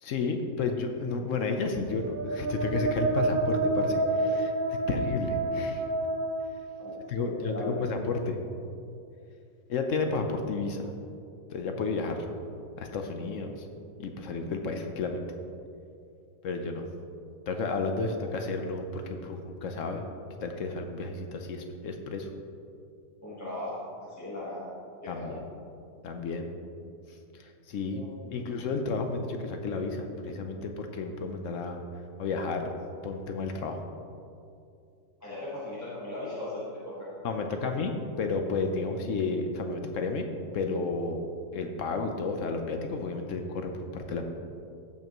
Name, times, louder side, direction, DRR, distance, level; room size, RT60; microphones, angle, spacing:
voice 1, 0.0-4.5 4.9-5.8 7.1-8.4 9.7-10.9 11.5-12.3 12.8-13.6 14.0-15.2 16.4-16.8 17.5-20.0 20.4-22.3 25.1-25.4 26.0-26.5 27.3-28.0 28.3-31.8 32.2-32.7 33.0-33.8 37.2-37.9 38.2-40.3 40.5-41.3 41.5-44.3, left 4 dB, 60° left, 5 dB, 0.8 m, -32 dB
sound 1, 1.8-7.5, right 2 dB, 75° right, 0.5 m, -29 dB
voice 2, 6.8-7.9 23.2-24.7 25.0-25.3 27.8-28.4 35.2-37.5, left 1 dB, 10° left, -9 dB, 1.2 m, -38 dB
15.5 x 5.7 x 3.0 m, 2.5 s
omnidirectional pair, 1.9 m